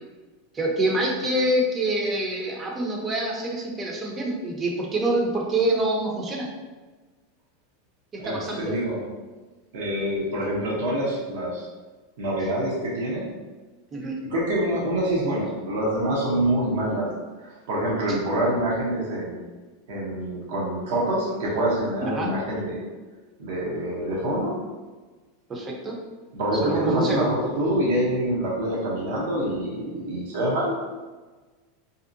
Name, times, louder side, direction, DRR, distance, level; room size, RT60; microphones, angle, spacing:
voice 1, 0.5-6.5 8.1-8.7 13.9-14.2 22.0-22.3 25.5-26.0 26.6-27.3, right 1 dB, 25° right, -1 dB, 0.6 m, -26 dB
voice 2, 8.2-9.1 9.7-11.7 12.2-13.3 14.3-17.1 17.4-19.4 19.9-22.8 23.4-24.6 26.3-30.7, right 1 dB, 70° right, -5 dB, 0.7 m, -26 dB
2.6 x 2.1 x 2.6 m, 1.3 s
hypercardioid pair, 110°, 0 cm